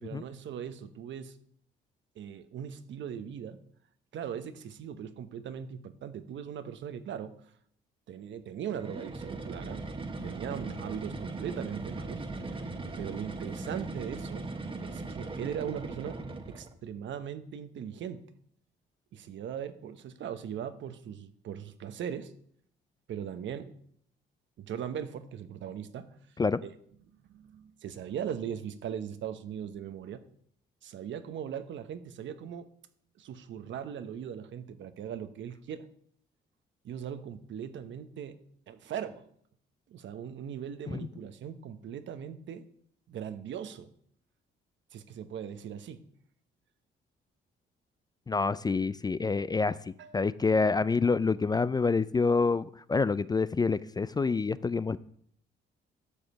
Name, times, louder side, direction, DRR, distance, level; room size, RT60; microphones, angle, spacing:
voice 1, 0.0-1.4 2.2-3.6 4.1-7.4 8.1-9.8 10.2-12.2 13.0-14.5 14.8-16.2 16.5-18.3 19.1-22.3 23.1-23.7 24.6-26.2 26.6-26.7 27.3-30.2 30.8-32.7 33.2-35.9 36.8-38.4 38.7-39.2 39.9-42.6 43.1-43.9 44.9-46.0 50.0-50.2, right 8 dB, 70° right, 10 dB, 1.0 m, -39 dB
sound 1, 8.7-16.8, right 3 dB, 25° right, 1.2 m, -39 dB
voice 2, 48.3-55.0, left 4 dB, 20° left, 16 dB, 0.3 m, -27 dB
11.5 x 5.1 x 7.1 m, 0.65 s
cardioid pair, 90°, 20 cm